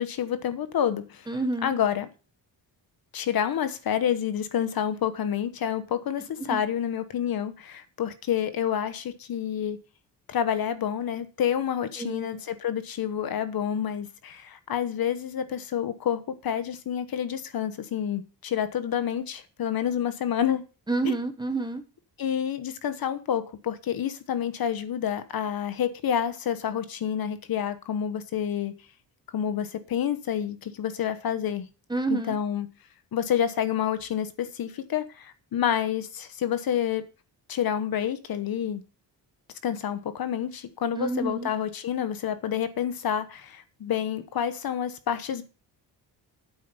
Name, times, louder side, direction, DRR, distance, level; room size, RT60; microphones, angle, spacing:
voice 1, 0.0-1.3 1.6-2.1 3.1-9.8 10.3-20.6 21.0-21.1 22.2-28.7 29.3-31.7 32.1-32.7 33.1-37.0 37.5-38.8 39.6-45.4, left 9 dB, 55° left, 11 dB, 1.1 m, -28 dB
voice 2, 1.3-1.8 6.5-6.6 12.0-12.4 20.9-21.8 31.9-32.4 41.0-41.5, right 2 dB, 10° right, 7 dB, 1.0 m, -29 dB
9.1 x 7.6 x 5.4 m, 0.33 s
wide cardioid pair, 170°, 42 cm